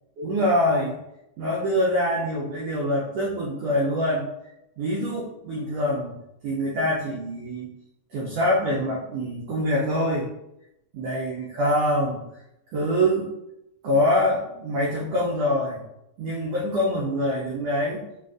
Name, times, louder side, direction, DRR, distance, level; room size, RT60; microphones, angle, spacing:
voice 1, 0.2-1.0 1.4-4.3 4.8-6.2 6.4-7.7 8.1-10.3 10.9-12.2 12.7-13.3 13.8-15.8 16.2-18.1, equal, 85° right, -4 dB, 1.4 m, -24 dB
4.9 x 2.4 x 2.4 m, 0.83 s
omnidirectional pair, 3.6 m